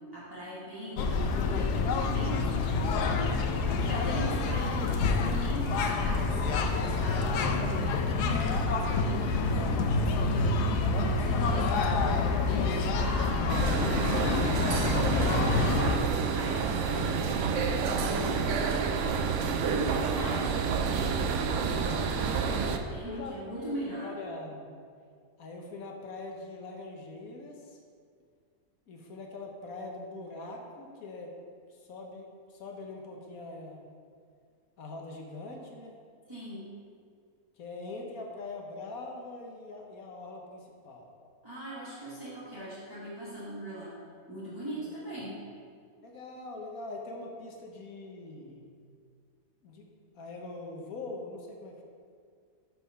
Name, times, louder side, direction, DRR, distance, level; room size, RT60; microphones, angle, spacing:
voice 1, 0.0-3.1 3.6-10.6 11.1-13.4 13.8-16.0 16.3-18.9 19.6-21.6 21.8-24.2 36.3-36.7 41.4-44.0 44.3-45.4, equal, 15° right, -11 dB, 1.5 m, -40 dB
sound 1, 1.0-16.0, left 3 dB, 80° left, 1.2 m, -27 dB
sound 2, 13.5-22.8, right 5 dB, 70° right, 0.7 m, -29 dB
voice 2, 19.7-20.3 22.6-22.7 23.0-24.7 25.4-27.8 28.9-31.3 31.7-33.9 34.8-36.0 37.6-41.0 44.8-44.9 46.0-48.7 49.6-49.9 50.1-51.8, left 2 dB, 60° left, 1 dB, 1.4 m, -43 dB
6.1 x 5.9 x 5.5 m, 2.1 s
omnidirectional pair, 1.7 m